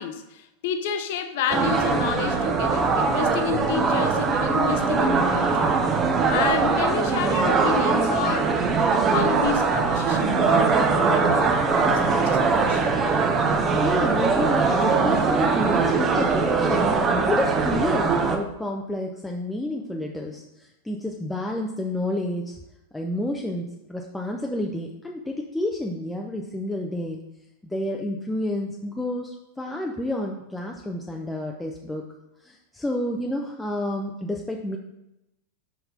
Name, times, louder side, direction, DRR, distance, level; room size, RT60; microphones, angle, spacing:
voice 1, 0.0-5.7 6.3-12.9, left 7 dB, 50° left, 8 dB, 0.7 m, -30 dB
sound 1, 1.5-18.4, right 4 dB, 25° right, 0.8 m, -21 dB
voice 2, 13.5-17.0 17.3-22.6 22.9-27.2 27.6-32.1 32.4-34.8, left 1 dB, 5° left, 1 dB, 0.6 m, -30 dB
5.9 x 5.3 x 4.1 m, 0.90 s
figure-of-eight pair, 90°, 0 cm